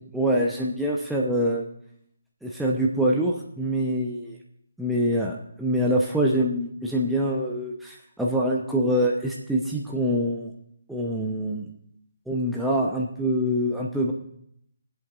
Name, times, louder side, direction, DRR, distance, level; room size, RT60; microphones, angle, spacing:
voice 1, 0.1-1.7 2.4-4.4 4.8-10.5 10.9-11.7 12.3-14.1, equal, ahead, -3 dB, 0.8 m, -25 dB
22.5 x 8.0 x 2.5 m, 0.72 s
figure-of-eight pair, 145°, 0 cm